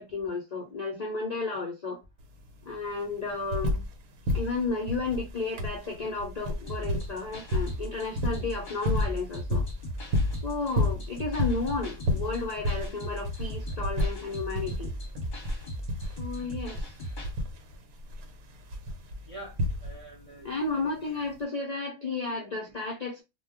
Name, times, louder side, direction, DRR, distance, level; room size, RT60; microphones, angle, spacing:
voice 1, 0.0-2.0 2.6-3.8 4.3-9.6 10.4-14.9 16.2-16.9 20.4-23.2, left 3 dB, 60° left, 0.4 m, -33 dB
sound 1, 2.2-2.3 2.5-4.0 4.2-20.2 21.3-21.4, left 1 dB, 80° right, 1.1 m, -31 dB
sound 2, 6.7-17.3, equal, 40° left, 0.8 m, -38 dB
voice 2, 19.3-21.2 22.7-22.8, right 2 dB, 45° right, 0.4 m, -47 dB
2.2 x 2.2 x 3.5 m
omnidirectional pair, 1.5 m